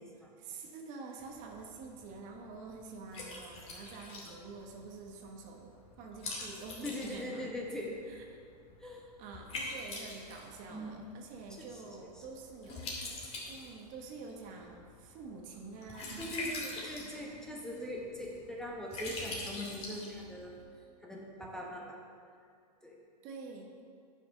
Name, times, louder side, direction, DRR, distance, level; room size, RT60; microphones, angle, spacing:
voice 1, 0.4-7.5 8.1-8.2 8.8-12.9 13.5-16.4 17.0-17.4 17.7-18.0 23.2-23.7, right 4 dB, 40° right, 2 dB, 1.3 m, -47 dB
Liquid, 1.2-20.6, left 2 dB, 30° left, 2.3 m, -45 dB
voice 2, 6.8-8.0 8.8-9.0 10.7-11.0 11.6-12.2 16.2-20.6 21.0-22.0 22.8-22.9, left 1 dB, 5° left, -2 dB, 1.2 m, -41 dB
9.5 x 5.8 x 5.3 m, 2.3 s
hypercardioid pair, 115°, 21 cm